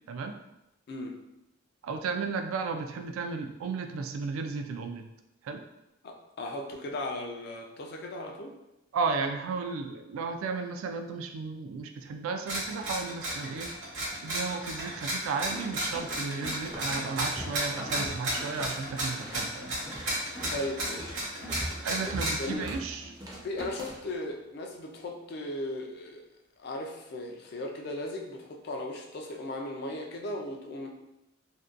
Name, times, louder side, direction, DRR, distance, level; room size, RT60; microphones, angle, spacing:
voice 1, 1.8-5.0 5.4-5.6 8.9-13.7 14.2-19.7 21.8-23.1, right 4 dB, 90° right, 7 dB, 0.3 m, -34 dB
voice 2, 6.0-8.5 20.5-21.2 22.4-22.7 23.4-26.3 26.6-30.9, left 1 dB, 50° left, 2 dB, 0.3 m, -37 dB
sound 1, 12.5-22.5, right 1 dB, 70° right, 0.9 m, -33 dB
sound 2, 15.5-24.1, equal, 85° left, 0.9 m, -47 dB
sound 3, 15.9-16.9 17.2-19.4 19.7-24.1, equal, 20° right, 0.4 m, -40 dB
2.6 x 2.2 x 2.4 m, 0.89 s
head